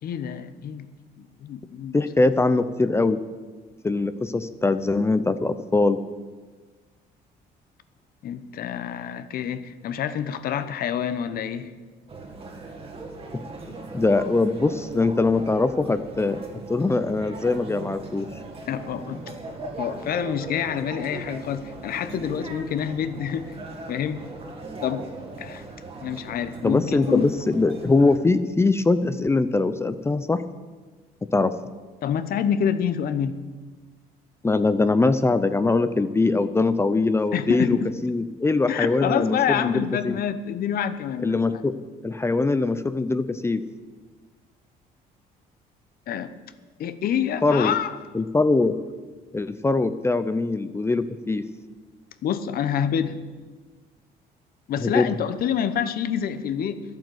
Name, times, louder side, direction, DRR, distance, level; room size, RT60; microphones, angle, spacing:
voice 1, 0.0-0.9 1.2-2.0 8.2-11.7 18.7-19.2 19.8-23.5 23.9-24.3 24.8-25.1 25.4-25.6 26.0-27.2 32.0-33.4 37.3-37.9 38.7-41.6 46.1-46.3 46.8-47.9 52.2-53.2 54.7-56.8, left 8 dB, 60° left, 11 dB, 1.0 m, -27 dB
voice 2, 1.9-3.2 3.8-6.0 13.3-13.4 13.9-16.4 16.7-18.3 26.6-30.4 31.2-31.5 34.4-40.1 41.2-41.7 42.0-43.6 47.4-47.7 48.1-48.7 49.3-51.5 54.8-55.1, left 3 dB, 15° left, 11 dB, 0.6 m, -22 dB
sound 1, 12.1-28.2, right 3 dB, 35° right, 2.1 m, -39 dB
12.0 x 9.0 x 7.9 m, 1.4 s
cardioid pair, 110°, 17 cm